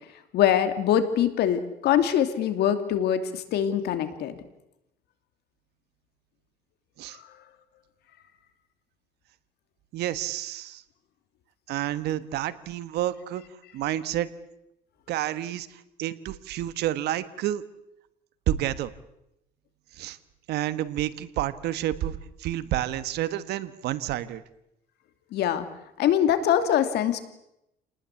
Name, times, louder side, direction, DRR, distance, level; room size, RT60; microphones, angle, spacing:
voice 1, 0.3-4.4 25.3-25.7 26.0-27.2, left 10 dB, 75° left, 9 dB, 2.8 m, -23 dB
voice 2, 9.9-10.8 11.7-13.4 13.7-14.3 15.1-15.7 16.0-17.6 18.5-18.9 20.0-20.2 20.5-24.4, right 13 dB, 75° right, 13 dB, 1.3 m, -29 dB
28.0 x 19.5 x 8.4 m, 0.85 s
cardioid pair, 110°, 17 cm